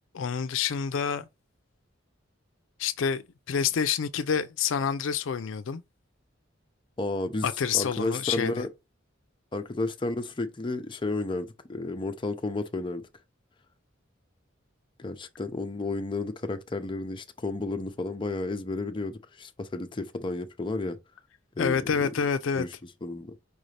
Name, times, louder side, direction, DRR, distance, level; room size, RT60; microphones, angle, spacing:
voice 1, 0.1-1.2 2.8-5.8 7.4-8.7 21.6-22.6, left 7 dB, 75° left, 0.4 m, -28 dB
voice 2, 7.0-7.5 7.7-8.7 9.5-13.0 15.0-21.0 21.6-21.9 22.5-22.7 23.0-23.3, left 2 dB, 25° left, 0.5 m, -32 dB
4.8 x 2.6 x 3.2 m
head